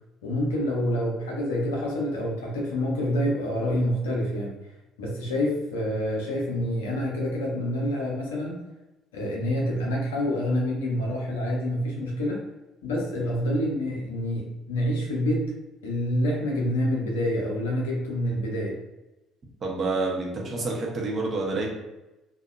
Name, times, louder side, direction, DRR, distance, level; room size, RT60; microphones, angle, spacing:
voice 1, 0.2-4.5 5.0-8.6 9.1-12.4 12.8-15.5 15.8-18.8, equal, 70° left, -2 dB, 0.5 m, -27 dB
voice 2, 19.6-21.7, right 3 dB, 40° right, -1 dB, 0.6 m, -28 dB
2.7 x 2.1 x 2.3 m, 1.0 s
figure-of-eight pair, 50°, 0 cm